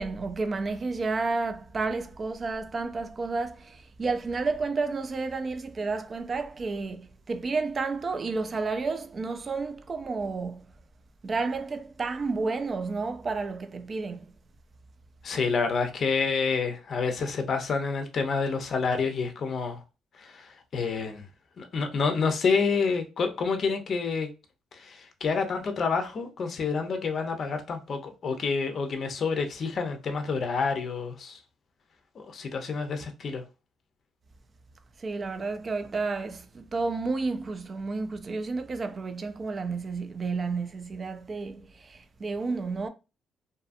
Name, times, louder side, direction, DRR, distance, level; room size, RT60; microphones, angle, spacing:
voice 1, 0.0-10.7 11.2-14.3 35.0-42.9, right 4 dB, 40° right, 0.4 m, -31 dB
voice 2, 15.2-19.8 20.2-21.2 21.6-24.3 24.7-31.4 32.2-33.4, left 5 dB, 55° left, 0.5 m, -28 dB
2.6 x 2.4 x 2.5 m
cardioid pair, 90°, 0 cm